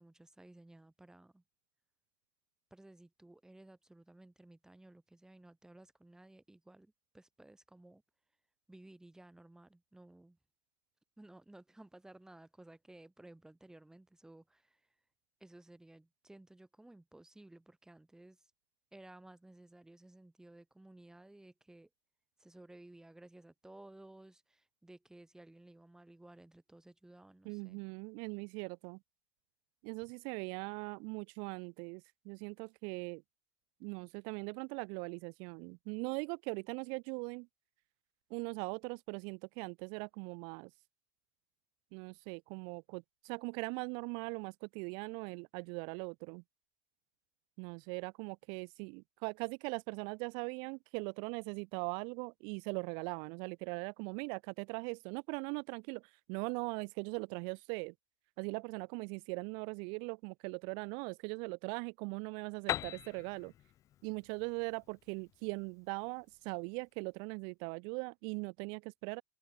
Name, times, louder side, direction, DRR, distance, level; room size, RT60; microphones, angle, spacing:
voice 1, 0.0-1.4 2.7-8.0 8.7-10.4 11.2-14.8 15.4-18.4 18.9-21.9 22.4-27.8, right 1 dB, 5° right, 6.8 m, -57 dB
voice 2, 27.4-29.0 29.8-33.2 33.8-37.5 38.3-40.7 41.9-46.4 47.6-57.9 58.4-63.5 64.0-69.2, right 37 dB, 65° right, 0.4 m, -40 dB
Piano, 62.7-66.3, left 12 dB, 35° left, 0.4 m, -42 dB
supercardioid pair, 105°, 9 cm